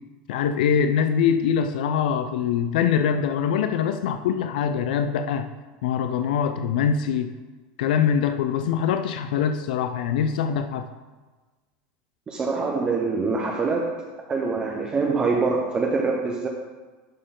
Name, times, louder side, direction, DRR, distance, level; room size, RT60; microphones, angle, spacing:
voice 1, 0.3-5.5 5.8-7.3 7.8-10.9, left 7 dB, 85° left, 8 dB, 0.4 m, -23 dB
voice 2, 12.3-13.9 14.3-16.5, right 4 dB, 20° right, 0 dB, 0.7 m, -24 dB
11.0 x 4.4 x 3.8 m, 1.3 s
supercardioid pair, 150°, 4 cm